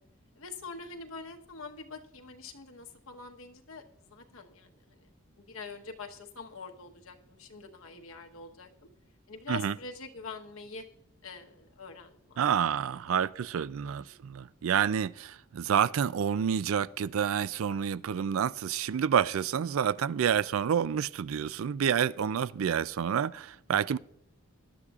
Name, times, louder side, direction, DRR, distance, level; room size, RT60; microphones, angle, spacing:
voice 1, 0.4-5.1 5.4-8.9 9.3-10.8 11.2-12.7 13.1-13.3 13.8-14.2, left 4 dB, 80° left, 1.1 m, -45 dB
voice 2, 12.4-24.0, right 8 dB, 80° right, 0.4 m, -28 dB
19.0 x 11.5 x 2.4 m
head